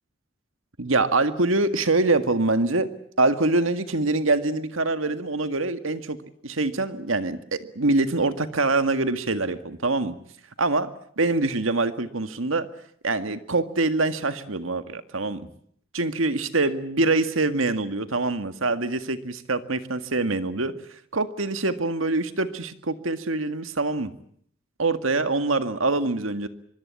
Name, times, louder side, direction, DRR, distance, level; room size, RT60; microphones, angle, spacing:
voice 1, 0.8-2.9 3.2-6.2 6.4-10.2 10.6-10.9 11.2-12.7 13.0-15.5 15.9-20.7 21.1-24.1 24.8-26.5, right 2 dB, 80° right, 10 dB, 1.8 m, -24 dB
24.0 x 23.5 x 8.4 m, 0.65 s
head